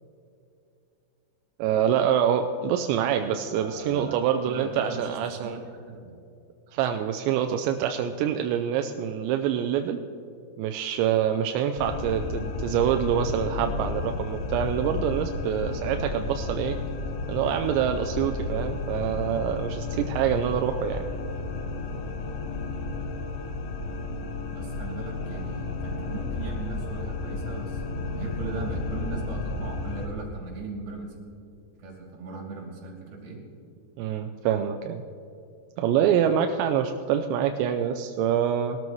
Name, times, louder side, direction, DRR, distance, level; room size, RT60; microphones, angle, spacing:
voice 1, 1.6-5.6 6.7-10.0 10.6-16.8 17.3-21.0 34.0-35.0 35.8-38.8, right 9 dB, 85° right, 6 dB, 2.8 m, -26 dB
voice 2, 3.5-4.2 4.5-5.6 5.9-6.1 24.5-31.2 31.8-33.4, right 3 dB, 55° right, -2 dB, 4.2 m, -38 dB
sound 1, 11.8-30.1, left 3 dB, 85° left, 3.3 m, -32 dB
20.5 x 13.0 x 3.1 m, 2.6 s
omnidirectional pair, 5.0 m